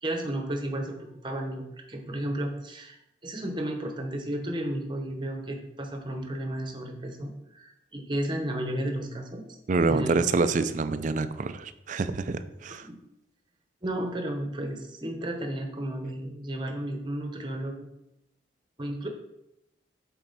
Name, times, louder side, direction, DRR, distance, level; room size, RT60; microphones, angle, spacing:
voice 1, 0.0-9.6 9.9-10.2 12.8-13.0 13.8-17.9 18.8-19.1, right 1 dB, 25° right, 4 dB, 0.9 m, -33 dB
voice 2, 9.7-12.9, right 3 dB, 40° right, 12 dB, 0.4 m, -26 dB
7.4 x 4.5 x 4.0 m, 0.86 s
head